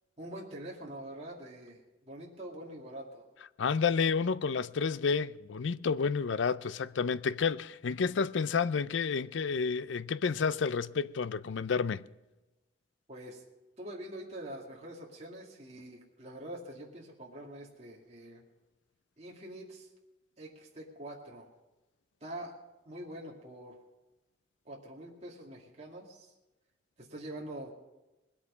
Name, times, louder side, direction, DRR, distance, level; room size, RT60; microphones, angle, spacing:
voice 1, 0.2-3.2 13.1-13.4 13.8-18.4 19.2-19.9 20.4-21.5 22.2-22.5 22.9-23.8 24.6-26.3 27.0-27.7, right 1 dB, 35° right, 2.3 m, -45 dB
voice 2, 3.6-12.0, left 5 dB, 80° left, 0.5 m, -30 dB
20.5 x 8.5 x 5.5 m
head